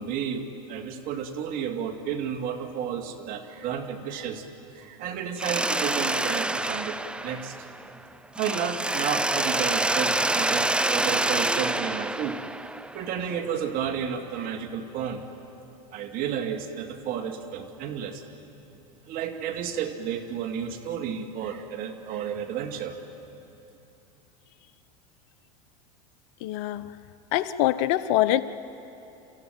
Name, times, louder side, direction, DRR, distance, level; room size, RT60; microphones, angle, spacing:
voice 1, 0.0-4.5 4.7-7.0 7.2-7.7 8.4-12.4 12.9-15.2 15.9-18.2 19.1-23.0, right 8 dB, 50° right, 5 dB, 2.2 m, -32 dB
Mechanisms, 5.4-8.0 8.4-13.2, right 2 dB, 5° right, 0.6 m, -27 dB
voice 2, 26.4-26.9 27.3-28.4, left 14 dB, 60° left, 15 dB, 0.9 m, -24 dB
28.5 x 14.5 x 9.3 m, 2.9 s
hypercardioid pair, 95°, 18 cm